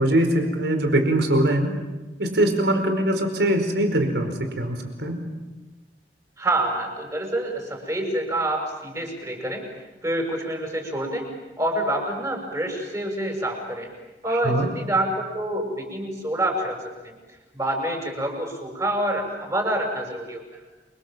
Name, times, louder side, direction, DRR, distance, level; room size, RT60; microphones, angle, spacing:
voice 1, 0.0-1.7 2.2-5.3 14.3-14.7, right 1 dB, 75° right, 6 dB, 4.9 m, -22 dB
voice 2, 6.4-9.7 10.0-13.9 14.2-17.1 17.5-20.5, right 1 dB, 20° right, 2 dB, 6.9 m, -27 dB
29.5 x 25.0 x 7.6 m, 1.1 s
head